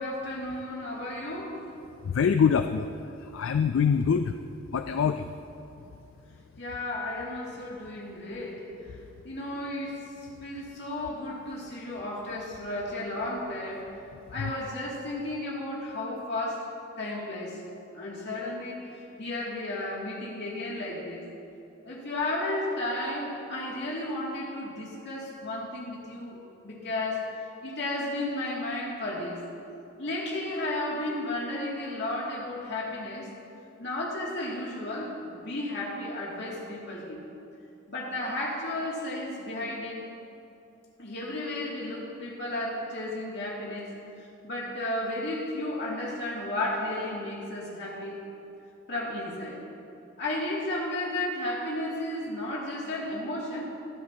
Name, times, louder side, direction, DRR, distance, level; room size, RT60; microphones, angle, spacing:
voice 1, 0.0-1.6 6.6-8.7 9.2-10.0 10.4-13.9 14.3-16.7 17.0-17.6 17.9-21.3 21.8-26.4 26.6-29.4 30.0-33.3 33.8-37.2 37.9-40.0 41.0-43.9 44.4-48.2 48.9-49.6 50.2-53.6, left 1 dB, 60° left, -4 dB, 2.6 m, -33 dB
voice 2, 2.1-2.9 3.3-4.4 4.7-5.3, left 6 dB, 80° left, 8 dB, 0.4 m, -24 dB
24.0 x 8.3 x 2.9 m, 2.7 s
head